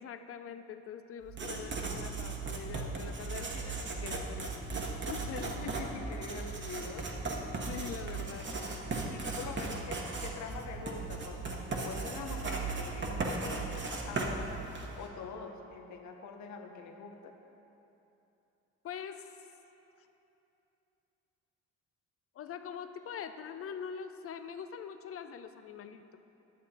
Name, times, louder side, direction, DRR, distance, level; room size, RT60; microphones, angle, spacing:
voice 1, 0.0-5.6 7.5-8.5 18.8-19.5 20.0-20.1 22.3-26.2, left 7 dB, 50° left, 9 dB, 0.5 m, -44 dB
Writing, 1.2-15.1, right 3 dB, 40° right, 1.2 m, -37 dB
voice 2, 5.6-7.1 8.1-8.3 9.1-14.5 15.0-17.3, left 5 dB, 70° left, 4 dB, 0.9 m, -44 dB
10.5 x 7.0 x 4.3 m, 3.0 s
cardioid pair, 90°, 30 cm